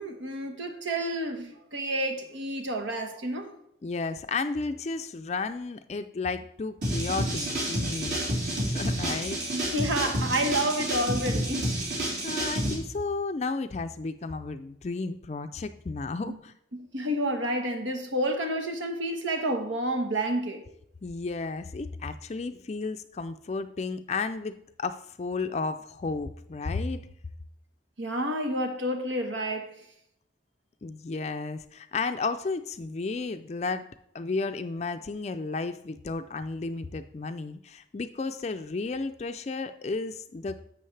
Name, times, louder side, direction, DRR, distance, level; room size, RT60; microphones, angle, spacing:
voice 1, 0.0-3.5 9.5-11.7 16.2-16.4 16.7-20.6 28.0-29.7, right 1 dB, 90° right, 1.3 m, -29 dB
voice 2, 3.8-9.4 12.0-16.5 21.0-27.0 30.8-33.9 34.1-40.6, left 3 dB, 35° left, 0.4 m, -33 dB
sound 1, 6.8-12.7, right 1 dB, 60° right, 3.9 m, -29 dB
11.0 x 7.6 x 3.3 m
head